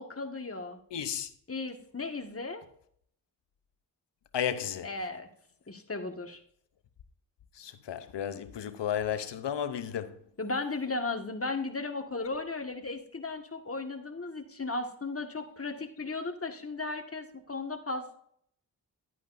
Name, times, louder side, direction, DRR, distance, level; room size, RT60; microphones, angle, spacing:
voice 1, 0.0-0.8 1.5-2.6 4.8-5.3 5.7-6.4 10.4-18.2, left 3 dB, 35° left, 1.7 m, -36 dB
voice 2, 0.9-1.3 4.3-4.9 7.5-10.2, left 9 dB, 85° left, 0.8 m, -33 dB
12.0 x 9.0 x 2.6 m
cardioid pair, 45°, 41 cm